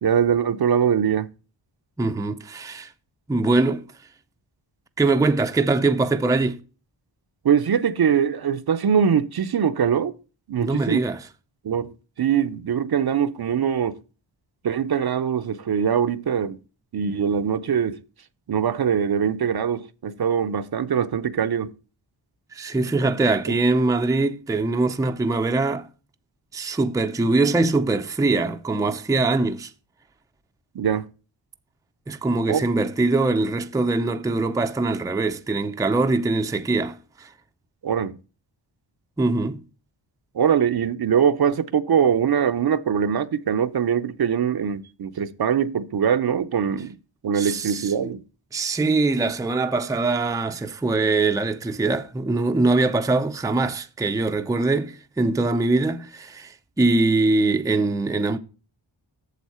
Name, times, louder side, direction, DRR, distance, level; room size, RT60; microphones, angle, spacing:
voice 1, 0.0-1.3 7.4-10.1 10.5-11.0 11.6-14.0 14.6-16.6 16.9-18.0 18.5-21.7 23.5-23.6 30.7-31.1 32.5-32.6 37.8-38.2 40.3-47.0 47.2-48.2, right 7 dB, 50° right, 0.6 m, -22 dB
voice 2, 2.0-2.9 3.3-3.8 5.0-6.6 10.6-11.3 22.5-25.9 26.5-29.7 32.1-37.3 39.2-39.6 47.3-48.1 48.5-58.4, right 3 dB, 5° right, 0.5 m, -22 dB
8.2 x 7.2 x 4.3 m
wide cardioid pair, 110°, 48 cm